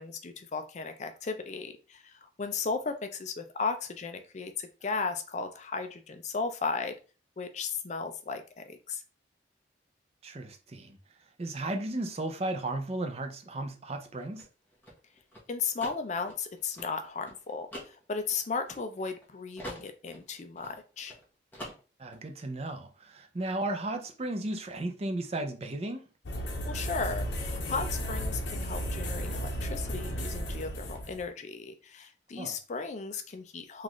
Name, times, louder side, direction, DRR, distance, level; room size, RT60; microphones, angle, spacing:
voice 1, 0.0-6.9 7.4-9.0 15.5-21.1 26.6-33.8, left 4 dB, 40° left, 0.4 m, -35 dB
voice 2, 10.2-11.0 11.4-14.5 22.0-26.0 32.4-32.5, right 2 dB, 35° right, 0.5 m, -35 dB
sound 1, 14.0-19.3 19.6-21.2 21.5-22.2, equal, 10° left, 1.0 m, -45 dB
sound 2, 26.3-31.3, equal, 70° left, 0.8 m, -34 dB
3.8 x 2.4 x 3.0 m
head